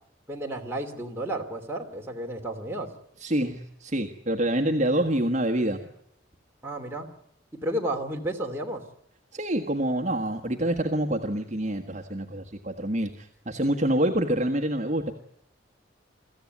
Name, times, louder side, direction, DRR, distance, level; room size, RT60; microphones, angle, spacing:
voice 1, 0.3-2.9 6.6-7.1 7.6-8.8, right 1 dB, 10° right, 0 dB, 3.0 m, -32 dB
voice 2, 3.2-5.9 9.3-15.1, right 1 dB, 35° right, 2 dB, 1.4 m, -26 dB
24.0 x 14.5 x 9.6 m, 0.77 s
head